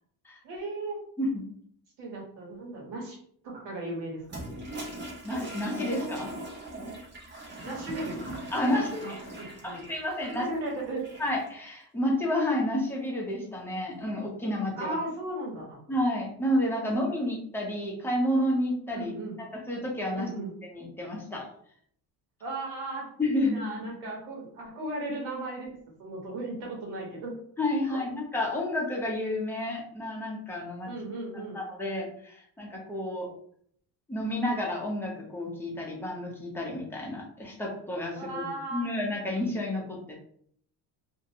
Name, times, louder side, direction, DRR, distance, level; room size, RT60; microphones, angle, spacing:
voice 1, 0.4-1.0 2.0-3.2 3.4-4.6 7.6-8.2 8.7-9.8 10.4-11.0 14.8-15.8 16.8-16.9 18.9-19.4 20.1-20.5 22.4-23.1 23.3-25.7 26.0-27.4 27.9-28.0 30.8-31.6 38.1-38.9, right 2 dB, 80° right, -2 dB, 1.2 m, -36 dB
Toilet flush, 4.2-11.5, right 1 dB, 25° right, 0.8 m, -40 dB
voice 2, 5.2-6.3 8.5-9.2 9.6-10.5 11.2-15.0 15.9-19.1 19.5-20.3 20.6-21.4 23.2-23.8 27.6-30.9 31.5-33.3 34.1-40.2, left 1 dB, 5° left, -2 dB, 0.7 m, -30 dB
2.6 x 2.2 x 2.8 m, 0.63 s
cardioid pair, 135°, 40 cm